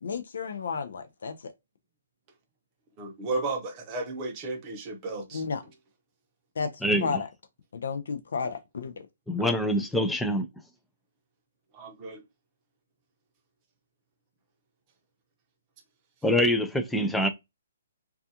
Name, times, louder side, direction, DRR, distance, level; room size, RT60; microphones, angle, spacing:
voice 1, 0.0-1.5 5.3-5.6 6.6-7.3 7.7-9.1, left 5 dB, 70° left, 0.5 m, -32 dB
voice 2, 3.0-5.4 9.4-9.5 11.7-12.2, right 3 dB, 25° right, 0.7 m, -34 dB
voice 3, 6.8-7.2 9.3-10.5 16.2-17.3, equal, 5° left, 0.3 m, -25 dB
2.3 x 2.3 x 2.7 m
hypercardioid pair, 160°, 0 cm